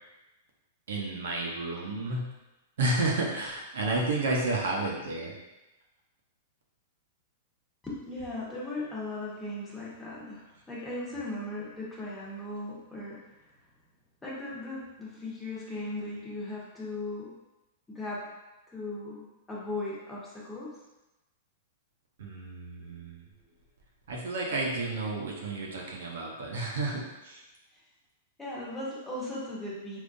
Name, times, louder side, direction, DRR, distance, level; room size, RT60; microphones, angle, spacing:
voice 1, 0.9-2.2 2.8-5.3 22.2-23.3 24.1-27.4, right 2 dB, 75° right, -2 dB, 0.7 m, -31 dB
voice 2, 7.8-13.2 14.2-17.3 17.9-18.3 18.7-20.7 22.8-23.0 28.4-30.0, left 2 dB, 15° left, -7 dB, 1.1 m, -38 dB
3.7 x 2.6 x 2.6 m, 1.0 s
hypercardioid pair, 120°, 0 cm